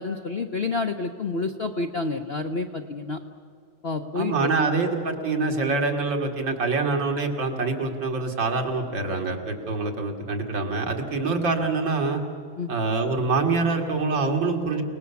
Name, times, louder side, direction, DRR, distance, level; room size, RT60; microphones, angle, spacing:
voice 1, 0.0-3.2 3.8-4.3 12.6-12.7, left 3 dB, 50° left, 5 dB, 0.8 m, -29 dB
voice 2, 4.1-12.2 12.7-14.8, right 3 dB, 70° right, 2 dB, 2.9 m, -25 dB
29.5 x 19.0 x 7.1 m, 2.1 s
omnidirectional pair, 2.1 m